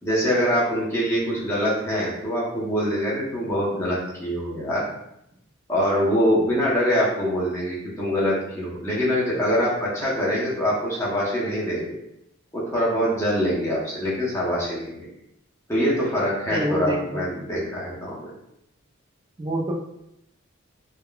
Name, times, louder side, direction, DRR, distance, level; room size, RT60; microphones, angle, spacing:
voice 1, 0.0-4.9 5.7-12.0 12.5-15.1 15.7-18.3, equal, 15° left, -7 dB, 0.8 m, -24 dB
voice 2, 16.5-17.3 19.4-19.7, equal, 20° right, -1 dB, 0.3 m, -27 dB
3.5 x 2.1 x 2.3 m, 0.80 s
head